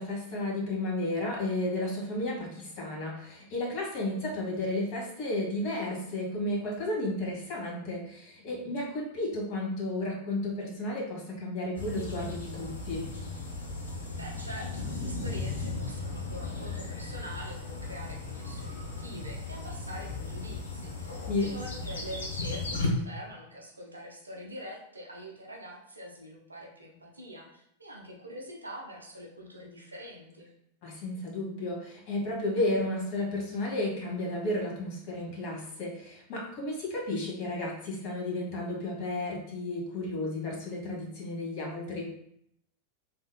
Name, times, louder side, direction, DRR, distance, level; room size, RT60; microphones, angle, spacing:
voice 1, 0.0-13.1 21.3-21.4 30.8-42.0, left 1 dB, 45° left, -3 dB, 1.2 m, -33 dB
sound 1, 11.8-22.9, left 3 dB, 70° left, 0.6 m, -36 dB
voice 2, 14.1-30.5, equal, 80° right, -1 dB, 0.7 m, -44 dB
3.4 x 2.7 x 2.2 m, 0.73 s
figure-of-eight pair, 90°, 0 cm